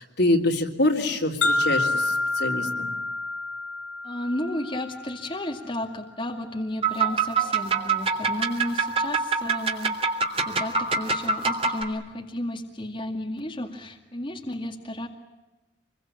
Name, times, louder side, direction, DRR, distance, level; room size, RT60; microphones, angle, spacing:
voice 1, 0.0-2.9, left 1 dB, 60° left, 2 dB, 3.4 m, -25 dB
sound 1, 1.4-5.4, left 2 dB, 85° left, 2.8 m, -28 dB
voice 2, 4.0-10.0 10.3-15.1, left 1 dB, 25° left, 1 dB, 2.2 m, -33 dB
sound 2, 6.8-11.8, right 4 dB, 30° right, 3.2 m, -25 dB
27.5 x 22.5 x 8.7 m, 1.1 s
head